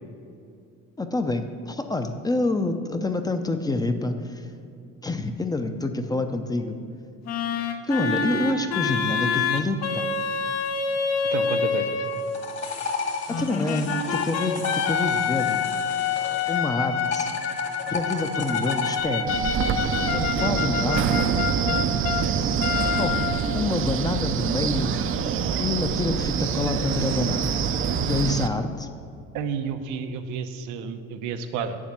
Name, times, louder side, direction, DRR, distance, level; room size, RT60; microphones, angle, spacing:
voice 1, 1.0-4.5 5.0-6.8 7.8-10.1 13.3-15.7 16.5-17.3 17.8-19.4 20.1-21.3 23.0-23.3 23.5-24.9 25.6-27.5 28.1-28.9, left 2 dB, 15° left, 7 dB, 0.6 m, -27 dB
sound 1, 7.3-12.4 13.3-22.3 22.6-23.7, left 6 dB, 65° left, 0.9 m, -27 dB
voice 2, 11.3-12.0 29.3-31.8, right 6 dB, 90° right, 8 dB, 0.8 m, -31 dB
sound 2, 12.0-16.6 17.0-19.0, left 5 dB, 40° left, 1.7 m, -32 dB
Wind, 19.3-28.5, right 7 dB, 45° right, 0.6 m, -25 dB
8.7 x 7.3 x 7.3 m, 2.5 s
cardioid pair, 125°, 29 cm